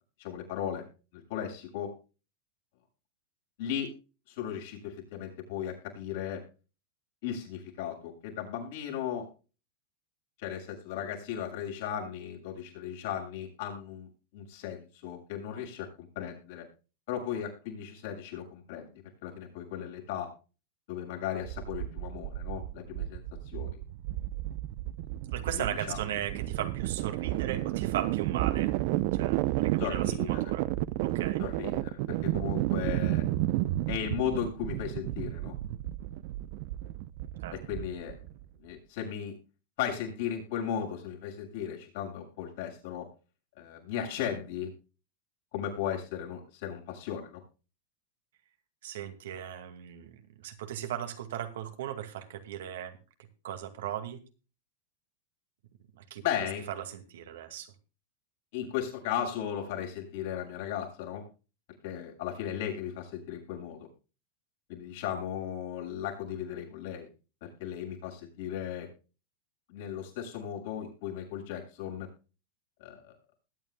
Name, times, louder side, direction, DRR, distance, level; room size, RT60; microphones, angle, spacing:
voice 1, 0.2-0.8 1.1-1.9 3.6-3.9 4.3-6.4 7.2-9.3 10.4-16.6 17.1-18.9 19.2-20.3 20.9-23.2 23.5-23.8 25.9-26.0 29.8-30.5 31.4-33.2 33.9-35.5 37.5-38.2 38.6-39.3 39.8-43.1 43.6-44.7 45.5-47.4 56.2-56.6 58.5-61.2 61.8-63.9 64.7-67.1 67.4-68.9 69.7-72.1 72.8-73.2, left 9 dB, 70° left, 1 dB, 6.9 m, -36 dB
sound 1, 21.4-38.4, right 16 dB, 60° right, 0.7 m, -32 dB
voice 2, 25.3-28.7 29.1-30.7 31.0-31.4 37.4-37.5 48.8-53.0 53.4-54.2 55.9-56.2 56.7-57.7, right 10 dB, 80° right, 7 dB, 2.2 m, -37 dB
20.5 x 9.4 x 2.3 m, 0.33 s
hypercardioid pair, 115°, 0 cm